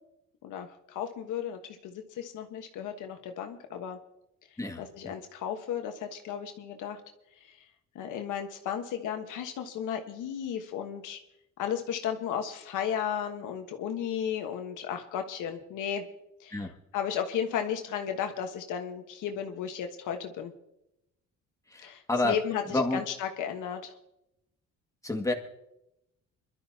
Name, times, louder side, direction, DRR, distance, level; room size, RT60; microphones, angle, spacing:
voice 1, 0.4-4.0 4.8-7.0 7.4-7.5 7.9-11.2 11.6-16.1 16.4-16.7 16.9-20.5 21.8-23.9, left 8 dB, 85° left, 5 dB, 1.4 m, -34 dB
voice 2, 21.7-22.4 22.7-23.0 25.0-25.3, left 2 dB, 10° left, 2 dB, 1.9 m, -28 dB
24.0 x 12.0 x 2.8 m, 0.86 s
cardioid pair, 90°, 30 cm